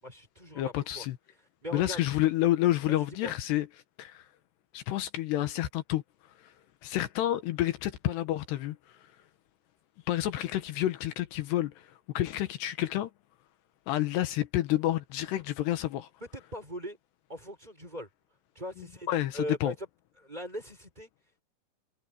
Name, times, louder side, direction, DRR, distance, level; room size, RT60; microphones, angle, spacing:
voice 1, 0.0-1.1 1.6-2.0 2.9-3.3 16.3-17.0 17.3-18.1 18.6-19.7 20.2-21.1, equal, 10° right, 5.4 m, -40 dB
voice 2, 0.6-1.2 1.7-3.7 4.0-4.3 4.7-6.0 6.8-8.8 10.1-11.9 12.1-13.1 13.9-16.1 19.1-19.7, left 14 dB, 80° left, 3.2 m, -29 dB
omnidirectional pair, 4.9 m